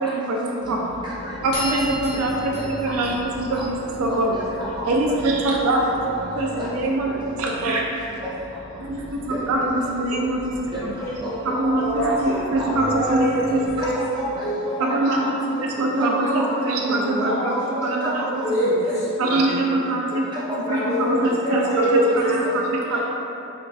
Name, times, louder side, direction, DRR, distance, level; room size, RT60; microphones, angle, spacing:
voice 1, 0.0-0.8 1.4-4.4 4.8-5.8 6.4-7.1 7.4-7.8 8.8-10.4 10.8-10.9 11.4-13.9 14.8-15.2 15.6-17.6 17.8-18.3 18.6-18.8 19.2-20.2 20.7-21.8 22.5-23.0, right 2 dB, 70° right, -1 dB, 0.3 m, -23 dB
sound 1, 0.6-13.7, left 1 dB, 65° left, 0.7 m, -40 dB
voice 2, 0.6-1.3 1.7-1.8 2.5-2.6 3.5-3.6 4.5-4.8 5.7-6.1 6.6-6.7 7.1-7.2 8.2-8.3 9.6-9.7 10.7-11.1 11.5-11.7 11.9-12.1 12.6-13.0 13.8-15.3 16.0-16.4 16.8-17.0 17.2-17.4 18.0-18.5 20.5-20.8 21.6-21.7 22.8-23.0, equal, 20° right, -9 dB, 0.6 m, -32 dB
sound 2, 1.5-4.1, left 1 dB, 80° left, 1.0 m, -34 dB
voice 3, 11.0-11.3 11.8-12.3 12.8-13.4 13.8-13.9 14.4-15.1 16.0-16.5 16.9-17.9 18.4-19.5 20.6-22.4 22.9-23.0, equal, 15° left, -10 dB, 0.7 m, -25 dB
4.3 x 2.3 x 2.3 m, 2.9 s
head